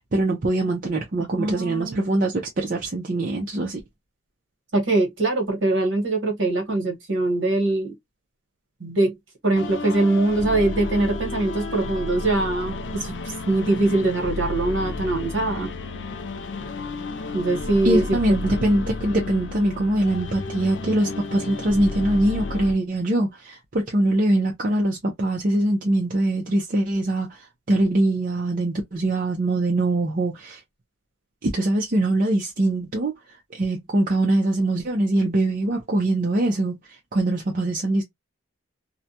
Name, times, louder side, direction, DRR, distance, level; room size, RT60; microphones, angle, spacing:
voice 1, 0.1-3.8 17.8-30.6 31.4-33.2 33.5-36.7 37.1-38.0, right 1 dB, 40° right, 0.5 m, -23 dB
voice 2, 1.2-2.0 4.7-7.9 8.8-9.2 9.4-13.1 13.5-15.7 17.3-18.2 18.4-18.6, right 2 dB, 65° right, 1.2 m, -22 dB
sound 1, 9.5-22.7, left 3 dB, 60° left, 0.4 m, -32 dB
2.4 x 2.2 x 2.7 m
head